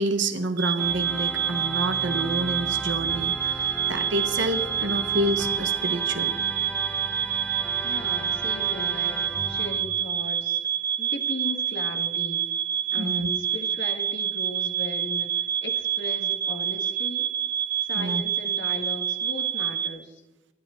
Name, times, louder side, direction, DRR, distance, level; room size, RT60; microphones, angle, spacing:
voice 1, 0.0-6.3 13.0-13.3 17.9-18.2, right 1 dB, 70° right, 8 dB, 1.3 m, -28 dB
sound 1, 0.6-19.9, right 10 dB, 50° right, 2.0 m, -27 dB
Organ, 0.8-9.9, equal, 5° left, 1.3 m, -36 dB
voice 2, 7.8-10.6 11.0-12.4 12.9-15.3 15.6-17.3 17.8-20.2, left 2 dB, 70° left, 5 dB, 1.7 m, -37 dB
24.0 x 11.0 x 3.8 m, 0.97 s
head